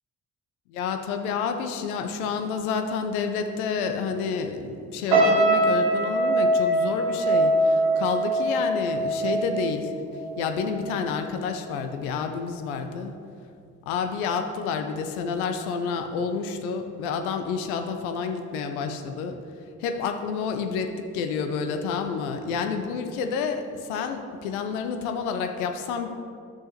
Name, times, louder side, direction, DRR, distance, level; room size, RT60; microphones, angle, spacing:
voice 1, 0.7-9.9 10.4-13.2 13.9-19.4 19.8-26.1, left 5 dB, 75° left, 7 dB, 0.8 m, -29 dB
sound 1, 5.1-10.4 10.7-11.0, right 1 dB, 70° right, 1.6 m, -22 dB
11.5 x 6.4 x 2.9 m, 2.3 s
figure-of-eight pair, 40°, 44 cm